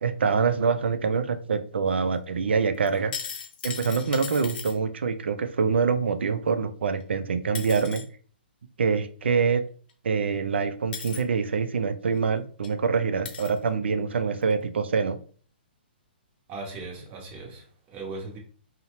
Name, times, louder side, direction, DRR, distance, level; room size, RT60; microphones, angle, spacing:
voice 1, 0.0-3.1 3.6-8.0 8.8-9.6 10.0-15.2, right 5 dB, 85° right, 0.3 m, -25 dB
sound 1, 2.9-4.7 7.0-7.1 7.5-8.0 9.9-10.0 10.9-11.2 12.2-12.3 12.6-12.7 13.2-13.6 14.4-14.5, left 6 dB, 55° left, 0.6 m, -37 dB
voice 2, 16.5-18.4, right 3 dB, 25° right, 0.7 m, -38 dB
2.6 x 2.1 x 2.9 m
hypercardioid pair, 145°, 6 cm